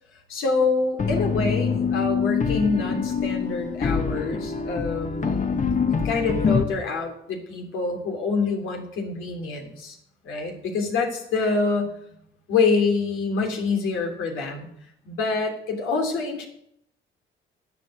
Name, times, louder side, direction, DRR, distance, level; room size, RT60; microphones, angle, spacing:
voice 1, 0.3-5.6 6.0-10.0 10.2-11.9 12.5-14.7 15.0-16.5, left 4 dB, 85° left, 1 dB, 3.1 m, -26 dB
sound 1, 1.0-6.6, left 6 dB, 40° left, 1.2 m, -25 dB
11.5 x 8.8 x 7.7 m, 0.73 s
cardioid pair, 90°, 20 cm